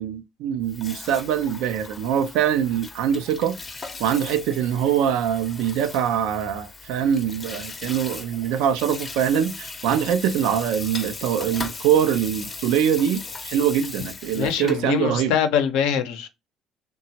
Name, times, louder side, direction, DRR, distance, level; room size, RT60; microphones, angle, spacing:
voice 1, 0.0-3.6 4.0-15.3, right 9 dB, 80° right, 0.5 m, -23 dB
Water tap faucet / Sink (filling or washing), 0.6-14.9, left 3 dB, 30° left, 0.6 m, -38 dB
voice 2, 14.3-16.3, left 8 dB, 85° left, 0.6 m, -23 dB
2.9 x 2.2 x 2.7 m
supercardioid pair, 95°, 0 cm